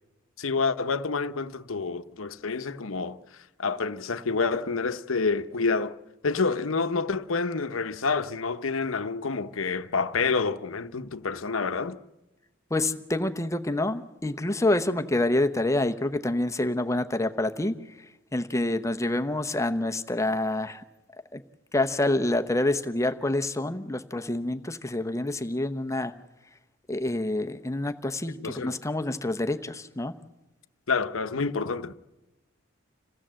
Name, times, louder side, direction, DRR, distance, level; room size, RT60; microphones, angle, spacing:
voice 1, 0.4-6.0 6.2-12.0 28.4-28.7 30.9-31.9, left 4 dB, 85° left, 0.9 m, -28 dB
voice 2, 12.7-20.8 21.3-21.4 21.7-26.1 26.9-30.1, left 1 dB, 15° left, 0.8 m, -27 dB
27.0 x 16.5 x 7.6 m
head